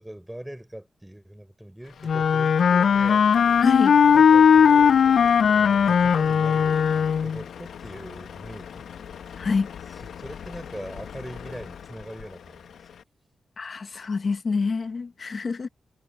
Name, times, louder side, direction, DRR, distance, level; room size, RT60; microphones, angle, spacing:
voice 1, 0.0-3.3 4.1-4.9 5.5-8.9 9.9-12.8, right 1 dB, 5° right, 4.4 m, -41 dB
Truck, 1.8-13.0, left 8 dB, 85° left, 0.9 m, -42 dB
Wind instrument woodwind instrument, 2.0-7.4, left 7 dB, 70° left, 0.3 m, -18 dB
voice 2, 3.6-4.0 9.4-9.7 13.6-15.7, left 4 dB, 50° left, 1.0 m, -26 dB
cardioid pair, 95°, 0 cm